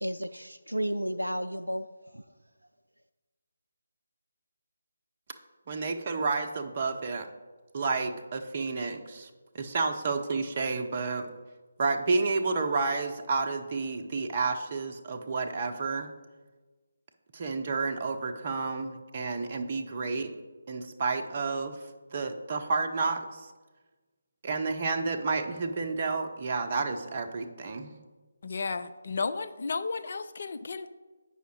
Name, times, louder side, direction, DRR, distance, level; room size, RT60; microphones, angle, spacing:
voice 1, 0.0-2.2, equal, 80° right, 7 dB, 0.3 m, -33 dB
voice 2, 5.7-7.3 7.7-9.3 9.5-11.3 11.8-16.1 17.3-20.3 20.7-21.7 22.1-23.5 24.4-28.0, right 4 dB, 30° right, 4 dB, 0.7 m, -30 dB
voice 3, 28.4-30.9, left 4 dB, 45° left, 10 dB, 0.3 m, -33 dB
8.1 x 5.6 x 4.7 m, 1.3 s
figure-of-eight pair, 150°, 0 cm